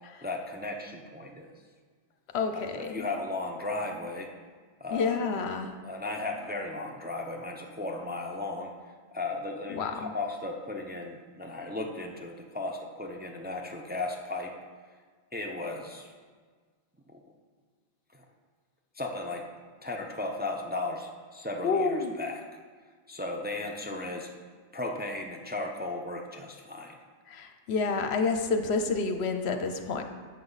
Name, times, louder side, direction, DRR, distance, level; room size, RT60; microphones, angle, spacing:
voice 1, 0.2-1.5 2.5-4.3 4.8-5.2 5.8-8.7 9.1-14.5 15.3-16.1 17.1-17.2 18.9-19.5 19.8-22.4 23.1-24.3 24.7-27.0, left 2 dB, 10° right, 1 dB, 0.6 m, -35 dB
voice 2, 2.3-3.1 4.9-5.7 9.7-10.1 21.6-22.1 27.3-30.0, left 4 dB, 65° left, 7 dB, 0.9 m, -29 dB
11.0 x 7.1 x 4.0 m, 1.6 s
omnidirectional pair, 1.2 m